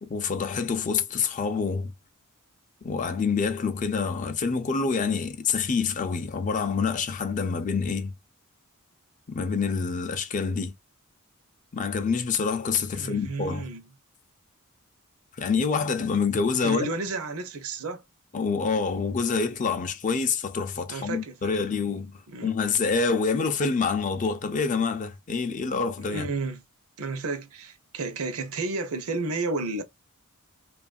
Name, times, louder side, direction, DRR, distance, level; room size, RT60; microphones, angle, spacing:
voice 1, 0.0-1.9 2.8-8.1 9.3-10.7 11.7-13.6 15.4-16.9 18.3-22.1 22.4-26.3, left 5 dB, 35° left, 0.4 m, -27 dB
voice 2, 12.9-13.8 16.6-18.0 20.9-21.8 22.3-22.5 26.0-26.6 27.0-29.8, right 3 dB, 70° right, 0.7 m, -32 dB
2.9 x 2.4 x 2.4 m
head